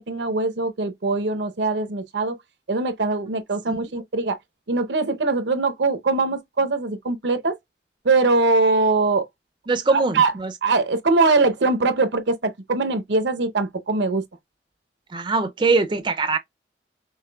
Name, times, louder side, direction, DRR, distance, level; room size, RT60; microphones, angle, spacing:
voice 1, 0.0-2.3 2.7-4.4 4.7-7.6 8.0-9.2 9.9-10.3 10.6-14.2, right 3 dB, 80° right, 0.7 m, -22 dB
voice 2, 9.7-10.5 15.1-16.4, right 3 dB, 25° right, 0.4 m, -22 dB
5.7 x 3.1 x 2.2 m
head